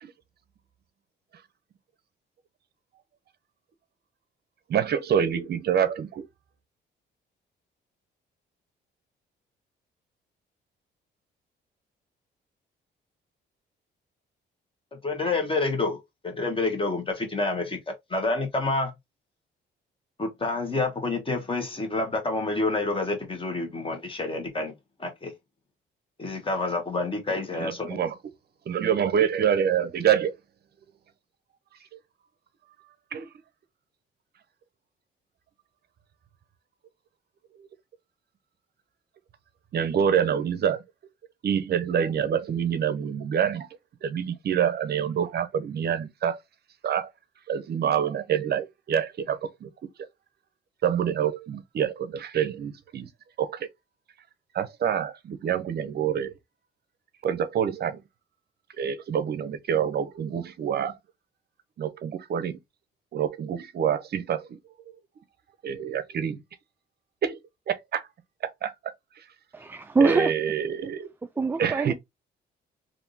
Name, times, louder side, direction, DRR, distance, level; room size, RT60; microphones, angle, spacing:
voice 1, 4.7-6.3 27.5-28.1 28.7-30.3 31.9-32.0 33.1-33.3 37.6-37.7 39.7-40.8 41.4-43.7 44.0-46.4 46.8-47.1 47.5-49.7 50.8-53.1 53.4-53.7 54.5-56.3 57.2-58.0 58.8-61.0 61.8-62.6 63.1-64.6 65.6-66.4 67.2-67.4 67.7-68.1 68.4-68.7 69.2-69.3 70.0-71.1 71.6-71.9, right 8 dB, 55° right, 0.6 m, -26 dB
voice 2, 15.0-18.9 20.2-24.7 25.0-25.3 26.2-28.0, left 3 dB, 25° left, 1.3 m, -28 dB
voice 3, 69.5-70.3 71.4-71.9, right 4 dB, 10° right, 0.3 m, -23 dB
3.4 x 2.6 x 2.6 m
cardioid pair, 90°, 20 cm